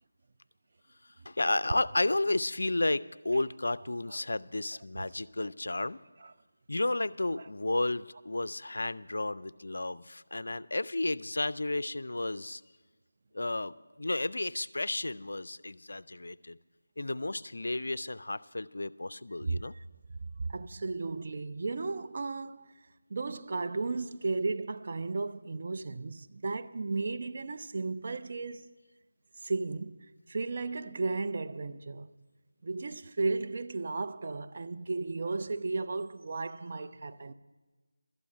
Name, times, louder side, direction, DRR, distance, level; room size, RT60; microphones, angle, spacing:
voice 1, 1.3-6.0 6.7-12.6 13.3-16.6 17.0-19.7, left 2 dB, 70° left, 0.4 m, -32 dB
voice 2, 19.5-19.8 20.5-22.7 23.1-28.7 29.4-29.9 30.3-32.1 32.6-37.3, right 3 dB, 45° right, 0.5 m, -34 dB
12.5 x 8.3 x 7.7 m
figure-of-eight pair, 165°, 0 cm